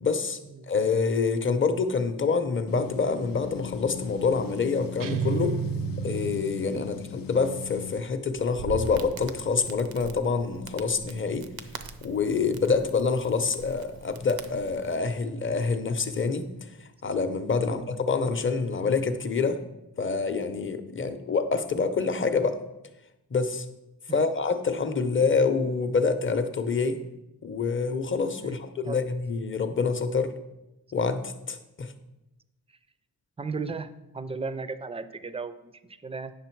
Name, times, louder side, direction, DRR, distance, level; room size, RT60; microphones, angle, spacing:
voice 1, 0.0-0.4 0.7-5.6 6.0-11.5 12.0-19.6 20.0-22.6 23.3-23.7 24.1-27.0 27.4-30.3 30.9-31.9, left 4 dB, 35° left, 9 dB, 0.7 m, -26 dB
sound 1, 2.7-8.0, left 11 dB, 70° left, 0.5 m, -40 dB
sound 2, 5.0-7.0, right 7 dB, 60° right, 0.6 m, -31 dB
Crackle, 8.3-15.0, right 6 dB, 90° right, 0.8 m, -42 dB
voice 2, 33.4-36.3, right 4 dB, 15° right, 12 dB, 0.4 m, -36 dB
9.3 x 6.3 x 4.5 m, 0.94 s
wide cardioid pair, 135°, 36 cm